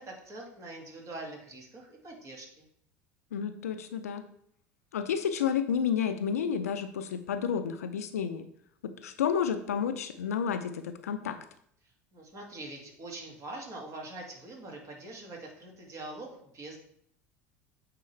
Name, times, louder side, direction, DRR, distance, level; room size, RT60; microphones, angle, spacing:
voice 1, 0.0-2.7 11.8-16.8, right 2 dB, 40° right, 0 dB, 2.2 m, -44 dB
voice 2, 3.3-4.2 4.9-8.5 8.8-11.4, left 7 dB, 85° left, 10 dB, 0.5 m, -31 dB
8.6 x 3.8 x 3.3 m, 0.67 s
hypercardioid pair, 75°, 8 cm